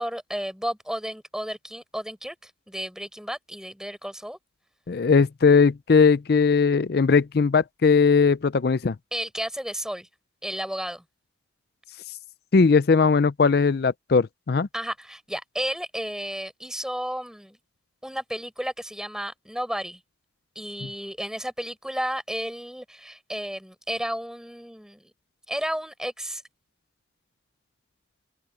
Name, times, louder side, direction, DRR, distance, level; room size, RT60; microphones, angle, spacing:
voice 1, 0.0-4.4 9.1-10.1 10.4-11.0 14.7-17.6 18.0-20.0 20.5-25.1 25.5-26.4, equal, 5° right, 4.9 m, -32 dB
voice 2, 4.9-9.0 12.5-14.7, left 5 dB, 55° left, 0.4 m, -19 dB
open air
head